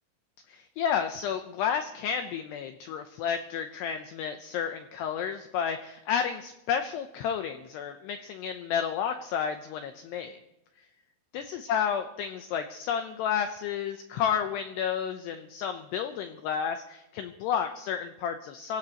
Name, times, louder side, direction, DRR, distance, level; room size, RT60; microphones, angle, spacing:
voice 1, 0.5-10.4 11.3-18.8, left 8 dB, 90° left, 7 dB, 2.4 m, -31 dB
24.0 x 16.0 x 3.0 m, 0.89 s
omnidirectional pair, 5.8 m